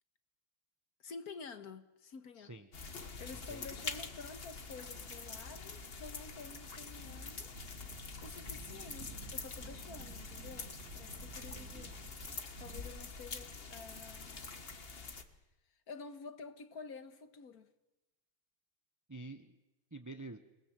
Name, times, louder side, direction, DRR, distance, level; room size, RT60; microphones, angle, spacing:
voice 1, 1.0-2.6 3.0-7.6 8.2-12.0 12.6-14.4 15.7-17.7, left 4 dB, 85° left, 2.0 m, -50 dB
voice 2, 2.4-2.7 3.3-3.8 11.4-11.9 19.1-19.6 19.9-20.4, right 2 dB, 15° right, 1.0 m, -49 dB
sound 1, 2.7-15.2, left 4 dB, 40° left, 1.6 m, -46 dB
sound 2, 4.6-15.4, right 1 dB, 70° right, 3.4 m, -53 dB
28.5 x 19.5 x 7.6 m
omnidirectional pair, 1.5 m